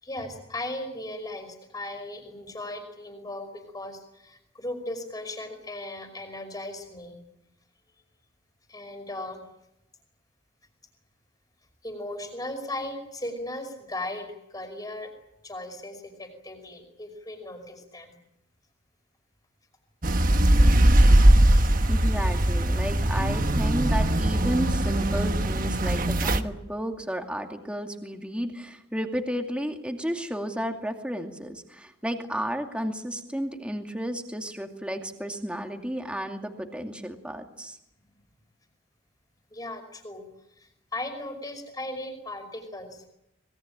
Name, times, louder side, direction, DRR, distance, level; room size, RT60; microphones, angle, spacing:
voice 1, 0.0-7.2 8.7-9.4 11.8-15.1 15.4-18.2 39.5-40.3 40.6-43.1, left 1 dB, 20° left, 7 dB, 5.3 m, -37 dB
sound 1, 20.0-26.4, right 1 dB, 45° right, 1.3 m, -20 dB
voice 2, 21.9-37.8, equal, 5° right, 4 dB, 2.5 m, -32 dB
26.0 x 21.5 x 8.9 m, 0.84 s
head